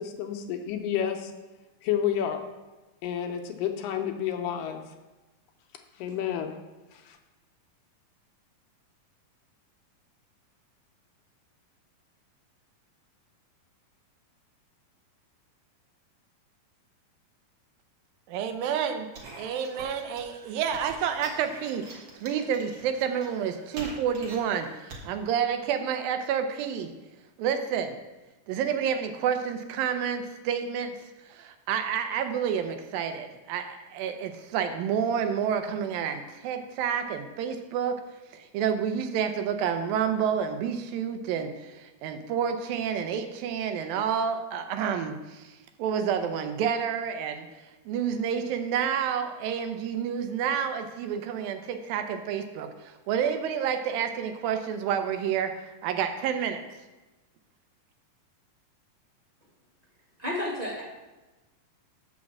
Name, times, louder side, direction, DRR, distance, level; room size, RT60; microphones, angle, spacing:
voice 1, 0.0-1.3 1.8-2.4 3.0-4.8 6.0-6.5 6.9-7.2, left 9 dB, 80° left, 5 dB, 2.2 m, -30 dB
voice 2, 18.3-19.1 19.4-26.9 27.4-28.0 28.5-30.9 31.3-38.0 38.3-47.5 47.9-56.6, right 8 dB, 90° right, 7 dB, 2.4 m, -29 dB
Talking Glitch, 19.1-25.1, right 2 dB, 50° right, 2.0 m, -45 dB
voice 3, 60.2-60.8, left 1 dB, 20° right, -5 dB, 1.1 m, -31 dB
6.4 x 5.9 x 7.2 m, 1.1 s
omnidirectional pair, 4.1 m